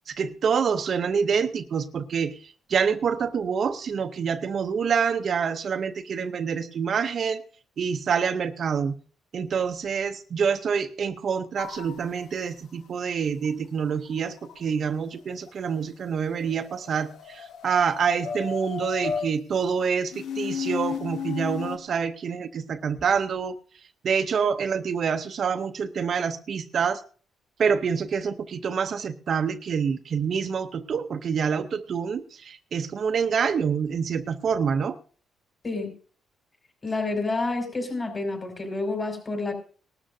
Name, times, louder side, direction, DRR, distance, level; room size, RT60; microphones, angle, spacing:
voice 1, 0.1-7.4 7.8-8.9 9.3-23.6 24.0-27.0 27.6-35.0, right 6 dB, 55° right, 0.7 m, -27 dB
sound 1, 11.6-12.2 13.4-13.5 13.8-14.6 15.3-15.5 16.3-19.3 20.1-21.8, left 7 dB, 75° left, 1.1 m, -33 dB
voice 2, 36.8-39.5, left 3 dB, 30° left, 4.8 m, -29 dB
18.5 x 12.5 x 2.7 m
cardioid pair, 90°, 0 cm